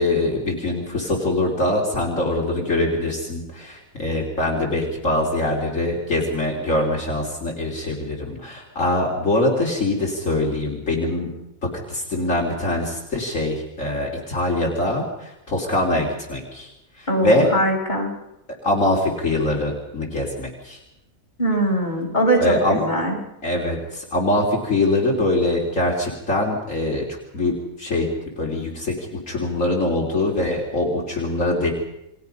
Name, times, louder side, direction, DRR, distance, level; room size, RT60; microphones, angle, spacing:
voice 1, 0.0-11.3 11.6-16.7 17.0-17.5 18.6-20.8 22.4-22.8 23.4-27.1 27.3-28.1 28.4-28.9 29.3-31.7, left 1 dB, 65° left, -2 dB, 3.8 m, -23 dB
voice 2, 17.1-18.1 21.4-23.2, right 1 dB, 35° left, -1 dB, 5.2 m, -21 dB
28.5 x 22.5 x 5.5 m, 0.87 s
omnidirectional pair, 1.4 m